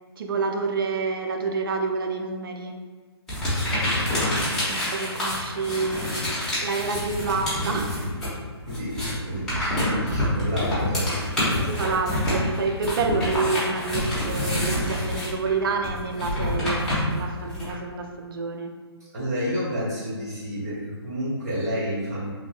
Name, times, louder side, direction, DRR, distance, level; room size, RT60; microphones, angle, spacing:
voice 1, 0.2-2.8 4.7-6.2 6.6-7.9 11.7-18.7, right 4 dB, 55° right, 4 dB, 0.4 m, -28 dB
sound 1, 3.3-8.4 8.6-17.7, left 1 dB, 5° left, 0.9 m, -27 dB
voice 2, 8.7-11.1 19.1-22.3, equal, 40° right, -8 dB, 1.2 m, -30 dB
3.2 x 2.6 x 2.4 m, 1.5 s
hypercardioid pair, 150°, 14 cm